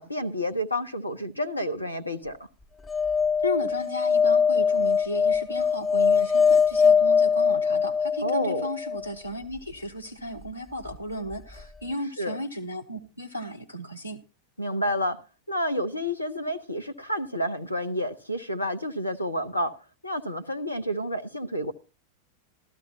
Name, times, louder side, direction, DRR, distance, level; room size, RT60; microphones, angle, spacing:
voice 1, 0.0-2.4 8.2-8.7 12.2-12.4 14.6-15.2 15.5-19.7 20.0-21.7, equal, 85° left, 0.7 m, -29 dB
sound 1, 2.9-9.0 11.3-11.4 11.6-11.7, left 6 dB, 15° left, 0.5 m, -22 dB
voice 2, 3.4-14.2, left 1 dB, 85° right, 0.9 m, -34 dB
15.0 x 12.5 x 2.7 m
figure-of-eight pair, 90°, 0 cm